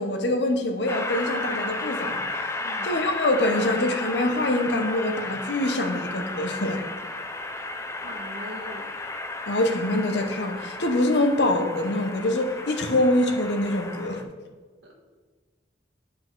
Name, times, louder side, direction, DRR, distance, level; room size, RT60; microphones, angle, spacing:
voice 1, 0.0-2.5 2.8-6.8 9.5-14.2, left 1 dB, 70° left, 5 dB, 0.9 m, -25 dB
Train, 0.9-14.2, left 2 dB, 15° left, 0.4 m, -33 dB
voice 2, 8.0-8.9 14.8-14.9, equal, 80° right, 0 dB, 1.4 m, -40 dB
7.6 x 4.8 x 3.8 m, 1.4 s
head